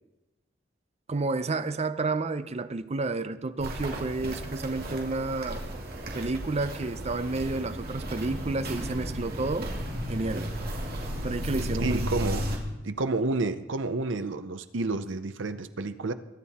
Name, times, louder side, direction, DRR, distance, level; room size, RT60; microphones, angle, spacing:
voice 1, 1.1-5.6 6.1-9.7 10.1-10.5 11.1-12.1, right 3 dB, 35° right, 0.6 m, -30 dB
Walk footsteps, 3.6-12.6, equal, 55° right, 2.4 m, -34 dB
voice 2, 11.8-12.5 12.8-16.1, right 3 dB, 70° right, 0.8 m, -30 dB
22.5 x 9.2 x 4.3 m
head